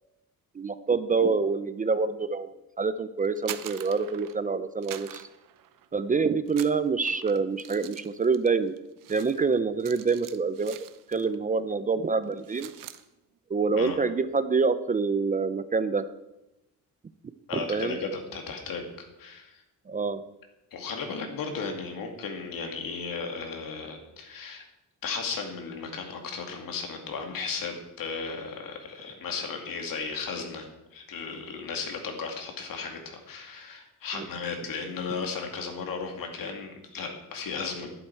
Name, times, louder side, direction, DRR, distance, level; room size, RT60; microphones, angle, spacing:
voice 1, 0.5-2.5 2.8-5.3 5.9-8.8 9.1-10.8 11.1-12.7 13.5-16.0 17.5-18.0 19.9-20.2 34.1-34.3, right 4 dB, 25° right, 13 dB, 0.4 m, -26 dB
sound 1, 3.2-4.5 4.8-6.1 6.5-11.4 11.7-11.9 12.2-13.0, right 11 dB, 70° right, 0.8 m, -44 dB
voice 2, 17.5-19.6 20.7-24.7 25.0-38.0, left 5 dB, 75° left, 3 dB, 2.4 m, -35 dB
12.0 x 11.0 x 4.6 m, 0.95 s
wide cardioid pair, 160°, 34 cm